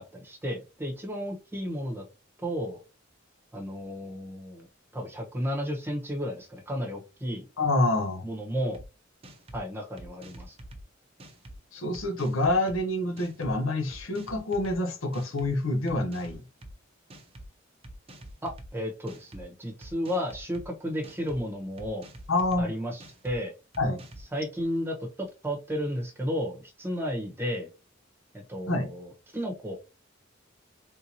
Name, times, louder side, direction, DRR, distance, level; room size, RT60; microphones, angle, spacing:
voice 1, 0.0-2.0 2.4-2.8 3.5-4.7 4.9-7.5 8.2-8.8 9.5-10.6 18.4-22.1 22.6-23.5 24.3-27.7 28.3-29.7, equal, 10° right, 1.0 m, -33 dB
voice 2, 7.6-8.2 11.7-16.4 22.3-22.7 23.8-24.0 28.7-28.9, left 2 dB, 85° left, 0.8 m, -27 dB
sound 1, 8.7-8.9 9.2-9.6 10.0-10.8 11.2-11.6 11.9-12.8 13.2-13.5 13.9-14.8 15.1-15.5 15.9-16.7 17.1-17.5 17.8-18.7 19.1-19.4 19.8-20.7 21.0-21.4 21.8-22.6 23.0-23.4 23.7-24.3, right 1 dB, 30° right, 0.6 m, -46 dB
3.5 x 2.8 x 2.7 m
head